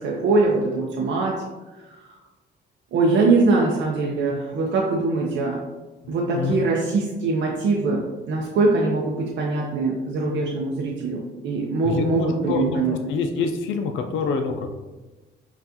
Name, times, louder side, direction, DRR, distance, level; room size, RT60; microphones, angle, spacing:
voice 1, 0.0-1.4 1.8-2.0 2.9-5.6 6.1-12.9, right 3 dB, 70° right, -2 dB, 0.6 m, -22 dB
voice 2, 6.0-6.6 11.8-14.7, left 5 dB, 75° left, 4 dB, 0.4 m, -26 dB
5.6 x 2.4 x 2.8 m, 1.2 s
cardioid pair, 90°, 20 cm